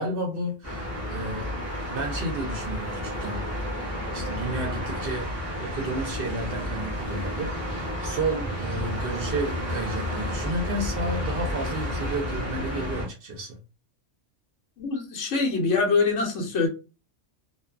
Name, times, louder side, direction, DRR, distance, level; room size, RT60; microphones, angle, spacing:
voice 1, 0.0-1.5 1.9-3.4 4.1-5.3 5.6-13.6, right 1 dB, 60° right, 0.7 m, -32 dB
sound 1, 0.6-13.1, equal, 15° left, 0.8 m, -31 dB
voice 2, 14.8-16.7, left 4 dB, 70° left, 1.1 m, -24 dB
2.5 x 2.3 x 2.2 m
omnidirectional pair, 1.3 m